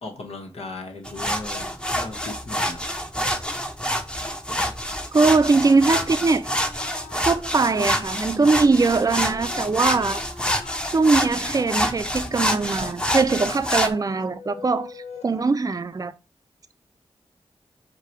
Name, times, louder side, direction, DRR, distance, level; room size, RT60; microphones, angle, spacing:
voice 1, 0.0-2.9, left 2 dB, 70° left, 1.2 m, -37 dB
sound 1, 1.1-13.9, equal, 10° left, 0.8 m, -27 dB
voice 2, 5.1-6.5 7.2-10.2 10.9-16.1, right 4 dB, 35° right, 0.5 m, -21 dB
Wind instrument woodwind instrument, 5.2-13.3, left 2 dB, 30° left, 2.6 m, -46 dB
sound 2, 8.9-15.4, left 5 dB, 90° left, 0.6 m, -45 dB
4.7 x 2.3 x 4.4 m
cardioid pair, 55°, 11 cm